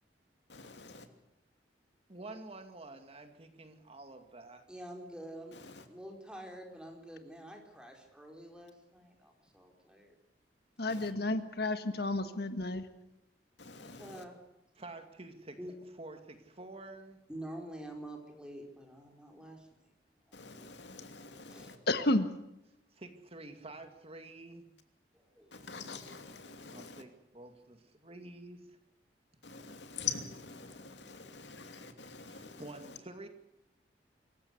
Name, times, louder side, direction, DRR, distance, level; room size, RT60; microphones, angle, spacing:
voice 1, 0.5-1.0 5.5-5.8 10.9-11.1 13.6-14.2 20.3-21.8 25.5-27.0 29.4-33.0, left 6 dB, 85° left, 6 dB, 2.8 m, -45 dB
voice 2, 2.1-4.6 14.8-15.6 16.0-17.2 22.9-24.6 26.7-28.6 32.6-33.3, right 2 dB, 35° right, 7 dB, 2.4 m, -48 dB
voice 3, 4.7-5.6 5.9-10.2 11.1-11.2 13.8-14.4 15.6-15.7 17.3-19.8 20.3-20.4 21.5-21.7 25.1-25.6, right 1 dB, 5° right, 2 dB, 4.5 m, -47 dB
voice 4, 10.8-12.9 21.9-22.3, left 2 dB, 65° left, 9 dB, 1.6 m, -31 dB
25.5 x 15.5 x 8.3 m, 0.88 s
head